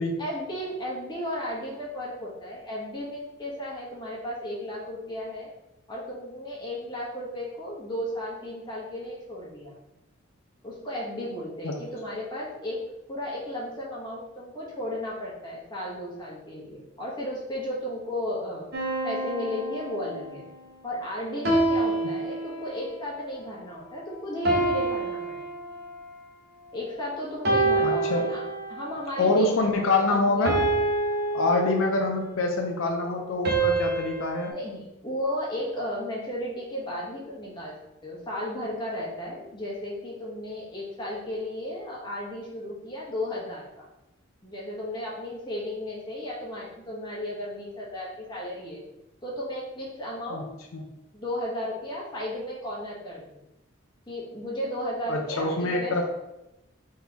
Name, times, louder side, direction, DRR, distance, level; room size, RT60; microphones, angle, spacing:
voice 1, 0.2-5.5 5.9-9.7 10.6-12.8 13.1-18.7 19.0-20.5 20.8-25.4 26.7-28.4 28.7-29.6 30.1-30.5 34.5-37.7 38.0-43.9 44.4-48.8 49.2-50.5 51.1-53.4 54.1-56.1, left 1 dB, 20° left, -5 dB, 1.2 m, -34 dB
sound 1, 18.7-20.4 21.4-23.0 24.4-26.1 27.4-29.0 30.4-32.2 33.4-34.5, right 2 dB, 50° right, 0.8 m, -27 dB
voice 2, 27.8-28.4 29.2-30.7 31.3-34.5 50.3-50.4 50.7-50.8 55.1-56.1, left 2 dB, 80° left, 2 dB, 0.5 m, -25 dB
4.1 x 3.7 x 2.9 m, 0.94 s
head